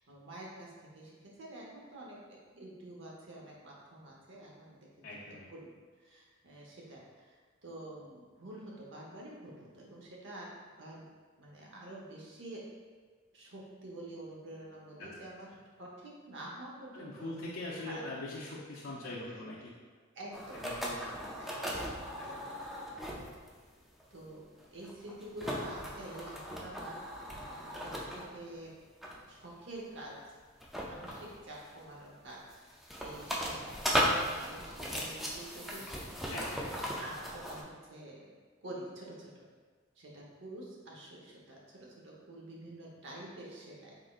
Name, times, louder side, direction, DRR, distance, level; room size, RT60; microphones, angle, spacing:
voice 1, 0.0-2.2 2.5-4.9 5.3-5.7 6.0-11.1 11.4-12.6 13.3-15.5 15.8-17.3 17.8-18.0 20.1-21.5 22.2-23.3 24.1-28.7 29.3-30.4 30.8-32.6 33.0-38.3 38.6-39.5 40.0-43.9, right 1 dB, 65° right, -3 dB, 0.9 m, -48 dB
voice 2, 5.0-5.5 15.0-15.1 16.9-19.7 20.5-21.1 22.2-22.3 36.3-36.7, left 2 dB, 90° left, -7 dB, 0.5 m, -42 dB
sound 1, 20.3-23.5 24.0-24.2 24.6-28.4 29.0-29.3 30.6-31.8 32.3-37.6, equal, ahead, 0.4 m, -37 dB
3.9 x 3.7 x 2.4 m, 1.5 s
head